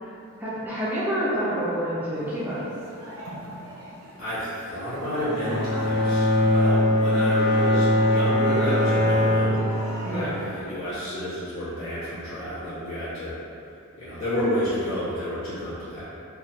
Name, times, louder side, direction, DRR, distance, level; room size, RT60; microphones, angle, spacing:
voice 1, 0.0-2.6 10.0-10.4, equal, 10° right, -10 dB, 0.3 m, -28 dB
sound 1, 2.1-10.6, right 1 dB, 70° right, 0.5 m, -41 dB
voice 2, 4.2-13.4 14.0-16.1, left 1 dB, 65° left, -13 dB, 1.4 m, -30 dB
Bowed string instrument, 5.2-10.5, equal, 50° left, 0.6 m, -22 dB
3.3 x 2.3 x 2.8 m, 2.7 s
head